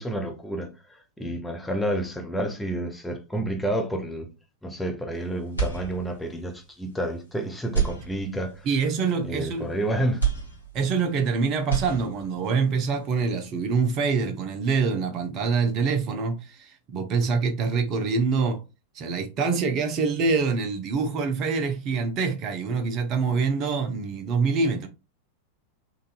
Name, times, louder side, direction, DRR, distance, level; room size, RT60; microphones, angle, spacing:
voice 1, 0.0-4.3 4.6-8.7 9.2-10.3, right 1 dB, 5° left, 0.8 m, -30 dB
sound 1, 5.5-6.4 6.9-7.0 7.6-8.7 10.2-11.3 11.5-12.5, right 6 dB, 80° left, 1.6 m, -29 dB
voice 2, 8.6-9.7 10.7-18.6 18.9-24.9, right 5 dB, 35° right, 0.7 m, -25 dB
3.9 x 2.6 x 2.5 m
figure-of-eight pair, 90°, 0 cm